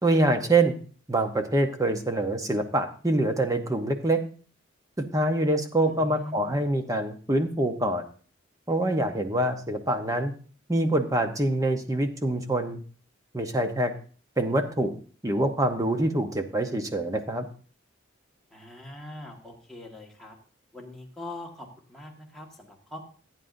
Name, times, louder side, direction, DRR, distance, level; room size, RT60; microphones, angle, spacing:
voice 1, 0.0-0.7 1.1-4.2 5.0-8.0 8.7-10.3 10.7-12.8 13.3-13.9 14.4-14.9 15.2-17.5, right 1 dB, 15° right, 6 dB, 0.8 m, -25 dB
voice 2, 5.8-6.6 18.5-20.4 20.7-23.0, left 1 dB, ahead, -2 dB, 1.6 m, -42 dB
15.0 x 9.2 x 2.6 m, 0.41 s
head